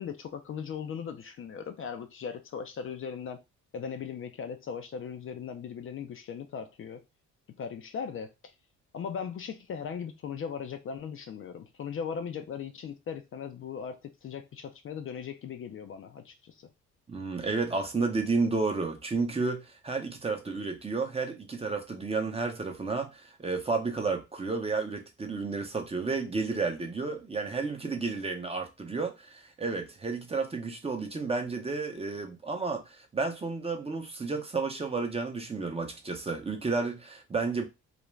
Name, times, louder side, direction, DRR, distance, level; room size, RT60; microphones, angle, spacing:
voice 1, 0.0-3.4 3.7-7.0 7.6-8.3 8.9-16.7, left 7 dB, 45° left, 0.4 m, -38 dB
voice 2, 17.1-37.7, right 4 dB, 20° right, 0.6 m, -31 dB
2.4 x 2.1 x 3.1 m
cardioid pair, 90°, 30 cm